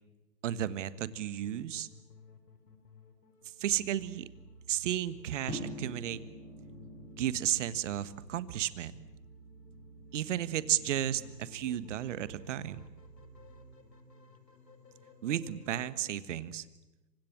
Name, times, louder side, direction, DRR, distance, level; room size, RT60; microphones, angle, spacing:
voice 1, 0.4-1.9 3.4-4.3 4.7-6.2 7.2-8.9 10.1-12.8 15.2-16.6, right 11 dB, 45° right, 15 dB, 1.5 m, -33 dB
sound 1, 0.7-16.1, left 5 dB, 75° left, 4.1 m, -58 dB
sound 2, 3.7-13.8, right 5 dB, 85° right, 2.3 m, -55 dB
sound 3, 5.5-11.7, left 1 dB, 20° left, 7.2 m, -48 dB
27.0 x 25.0 x 7.5 m, 1.1 s
hypercardioid pair, 130°, 49 cm